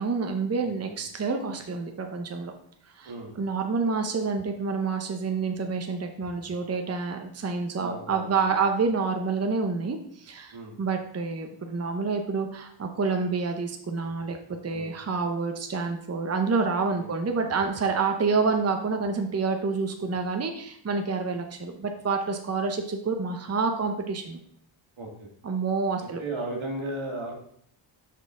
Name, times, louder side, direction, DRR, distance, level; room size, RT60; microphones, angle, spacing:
voice 1, 0.0-2.5 3.0-3.1 3.4-14.4 14.6-24.4 25.4-26.2, right 4 dB, 35° right, 5 dB, 0.7 m, -28 dB
voice 2, 0.6-0.9 3.0-3.3 7.7-8.6 10.5-10.7 14.7-14.9 16.9-17.1 25.0-25.3 26.0-27.3, right 2 dB, 85° right, 0 dB, 1.7 m, -36 dB
6.2 x 5.6 x 3.7 m, 0.66 s
wide cardioid pair, 85°, 46 cm